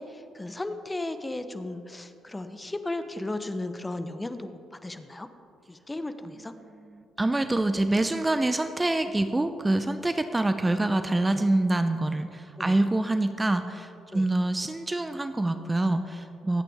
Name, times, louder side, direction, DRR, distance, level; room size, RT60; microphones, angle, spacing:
voice 1, 0.0-5.3 5.7-6.5 12.6-12.8 14.1-14.3, left 2 dB, 20° left, 9 dB, 1.0 m, -35 dB
voice 2, 6.8-16.6, right 2 dB, 20° right, 9 dB, 0.7 m, -26 dB
24.0 x 8.9 x 3.6 m, 2.6 s
hypercardioid pair, 45°, 0 cm